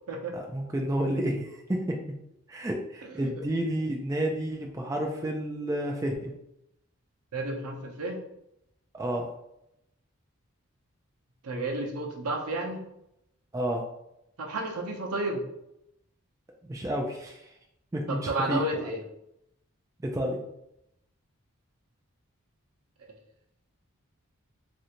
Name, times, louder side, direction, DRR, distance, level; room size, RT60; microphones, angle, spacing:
voice 1, 0.3-2.0 2.5-6.3 8.9-9.3 13.5-13.8 16.6-17.5 17.9-18.6 20.0-20.4, right 1 dB, 15° right, 0 dB, 0.3 m, -30 dB
voice 2, 7.3-8.2 11.4-12.8 14.4-15.4 18.1-19.0, right 2 dB, 90° right, 1 dB, 0.7 m, -31 dB
3.2 x 2.6 x 2.9 m, 0.82 s
head